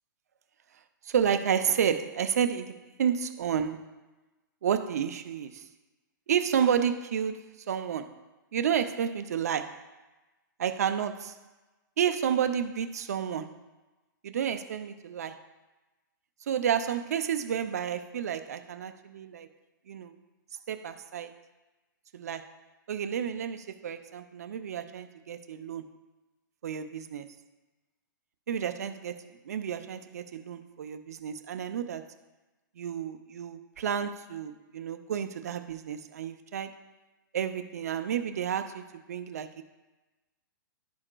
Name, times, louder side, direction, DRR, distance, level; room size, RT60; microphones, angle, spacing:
voice 1, 1.0-4.0 4.6-5.6 6.3-8.1 8.5-9.8 10.6-11.4 12.0-13.6 14.2-15.4 16.5-19.5 19.9-20.2 20.7-21.3 22.1-22.5 22.9-25.9 26.6-27.3 28.5-32.1 32.8-36.8 37.3-39.6, right 8 dB, 50° right, 9 dB, 0.4 m, -31 dB
12.0 x 4.9 x 2.2 m, 1.1 s
hypercardioid pair, 180°, 11 cm